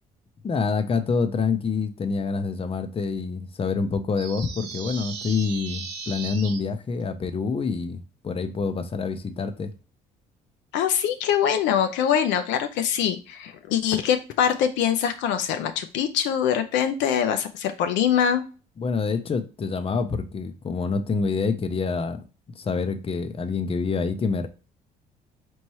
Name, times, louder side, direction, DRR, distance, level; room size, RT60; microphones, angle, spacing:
voice 1, 0.4-9.7 18.8-22.2 22.6-24.5, left 4 dB, 30° left, 0.6 m, -27 dB
sound 1, 4.2-6.6, right 6 dB, 90° right, 0.7 m, -37 dB
voice 2, 10.7-18.4, left 9 dB, 70° left, 0.5 m, -23 dB
4.3 x 3.1 x 2.8 m
hypercardioid pair, 60°, 20 cm